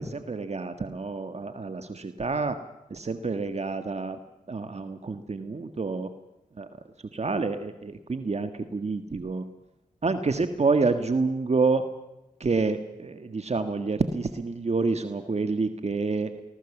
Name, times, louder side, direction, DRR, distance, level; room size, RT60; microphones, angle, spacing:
voice 1, 0.0-2.6 2.9-4.2 4.5-6.1 6.6-6.7 7.1-9.4 10.0-11.8 12.4-16.3, right 4 dB, 50° right, 8 dB, 1.7 m, -28 dB
25.0 x 20.0 x 7.3 m, 0.92 s
cardioid pair, 55°, 14 cm